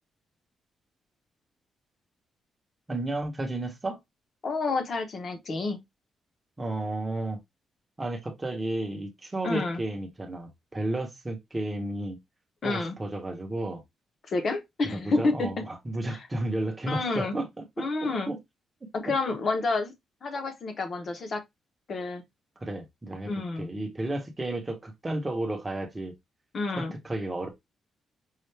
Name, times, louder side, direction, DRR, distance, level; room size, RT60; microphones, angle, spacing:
voice 1, 2.9-4.0 6.6-7.4 8.0-12.2 12.6-13.8 14.8-18.4 19.1-19.2 22.6-23.3 23.6-26.1 26.8-27.5, right 1 dB, 15° right, 0.9 m, -32 dB
voice 2, 4.4-5.8 9.4-9.8 12.6-13.0 14.3-15.6 16.1-16.2 16.9-17.3 17.8-18.3 18.9-19.9 20.2-21.4 21.9-22.2 23.3-23.7 26.5-26.9, left 3 dB, 35° left, 0.9 m, -29 dB
5.6 x 2.4 x 3.2 m
wide cardioid pair, 175°, 0 cm